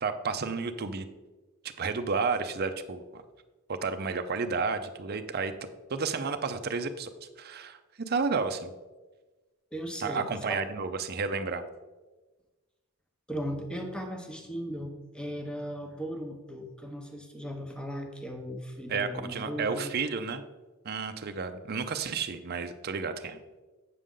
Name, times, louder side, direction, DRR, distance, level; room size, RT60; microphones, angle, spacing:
voice 1, 0.0-1.0 1.6-3.2 3.7-5.5 5.9-7.1 7.4-8.7 10.0-11.6 18.9-20.5 20.8-23.4, right 4 dB, 50° right, 8 dB, 0.6 m, -31 dB
voice 2, 9.7-10.6 13.3-19.9, equal, 5° left, 3 dB, 0.9 m, -37 dB
8.4 x 6.7 x 3.8 m, 1.2 s
head